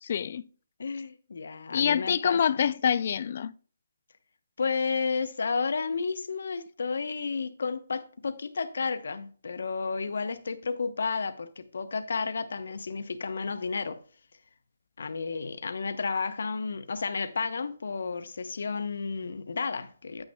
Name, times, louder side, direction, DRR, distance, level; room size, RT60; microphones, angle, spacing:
voice 1, 0.0-0.5 1.7-3.5, left 8 dB, 35° left, 0.3 m, -26 dB
voice 2, 0.8-2.6 4.6-14.0 15.0-20.2, left 4 dB, 65° left, 0.9 m, -32 dB
8.9 x 8.5 x 2.3 m
hypercardioid pair, 175°, 0 cm